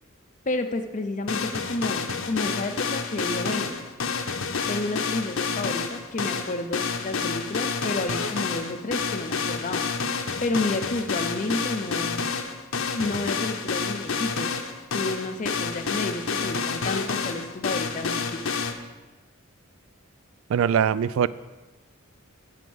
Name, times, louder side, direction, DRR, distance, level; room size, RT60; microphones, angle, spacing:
voice 1, 0.5-3.8 4.7-12.3 12.9-14.5 14.9-18.6, left 2 dB, 35° left, 6 dB, 0.6 m, -31 dB
sound 1, 1.3-18.7, left 5 dB, 75° left, 0.8 m, -29 dB
voice 2, 20.5-21.3, right 8 dB, 75° right, 18 dB, 0.3 m, -21 dB
9.3 x 5.3 x 7.7 m, 1.2 s
head